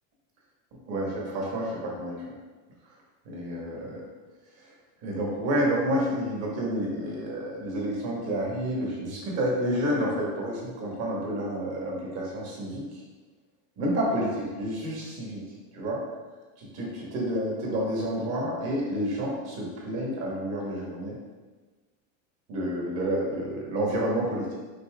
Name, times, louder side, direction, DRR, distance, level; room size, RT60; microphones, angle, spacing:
voice 1, 0.9-2.2 3.2-4.0 4.6-4.7 5.0-12.8 13.8-15.4 15.7-16.0 16.7-21.2 22.5-24.6, equal, 40° right, -3 dB, 1.2 m, -29 dB
5.3 x 3.8 x 2.3 m, 1.3 s
cardioid pair, 165°, 40 cm